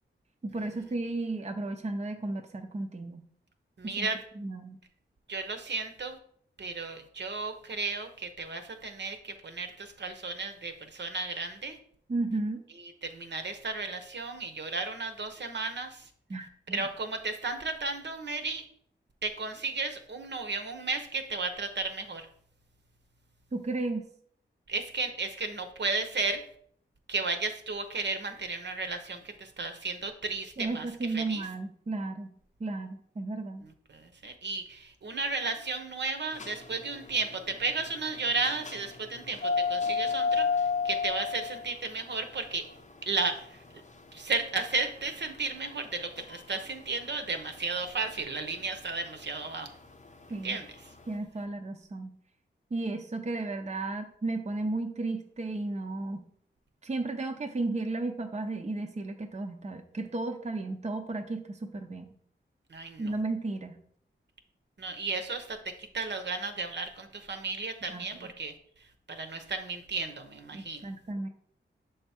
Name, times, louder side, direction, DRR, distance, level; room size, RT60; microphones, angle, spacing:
voice 1, 0.4-3.2 3.8-4.1 4.4-4.8 12.1-12.7 16.3-16.8 23.5-24.1 30.6-32.3 32.6-33.6 50.3-50.6 51.1-52.2 52.7-56.3 56.8-62.1 63.0-63.8 67.9-68.3 70.5-71.3, right 2 dB, 35° right, 4 dB, 0.6 m, -34 dB
voice 2, 3.8-4.2 5.3-6.2 6.6-11.8 12.8-16.1 16.7-18.6 19.2-22.3 24.7-26.4 27.1-31.4 33.6-40.5 40.8-42.7 43.0-43.6 44.1-49.7 50.4-50.7 62.7-63.2 64.8-68.5 69.1-70.9, right 3 dB, 60° right, 7 dB, 0.9 m, -34 dB
sound 1, 36.3-51.0, left 5 dB, 35° left, 0.6 m, -34 dB
6.3 x 3.5 x 4.3 m, 0.63 s
cardioid pair, 50°, 20 cm